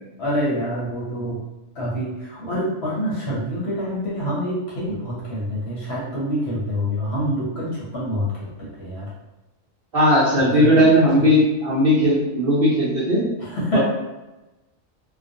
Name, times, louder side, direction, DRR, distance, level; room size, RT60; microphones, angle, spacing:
voice 1, 0.2-1.4 1.7-9.1 10.4-10.8 11.2-11.3 13.4-13.8, equal, 60° left, -6 dB, 0.8 m, -26 dB
voice 2, 9.9-13.2 13.7-13.8, equal, 55° right, -7 dB, 0.8 m, -17 dB
2.4 x 2.2 x 2.6 m, 1.0 s
omnidirectional pair, 1.4 m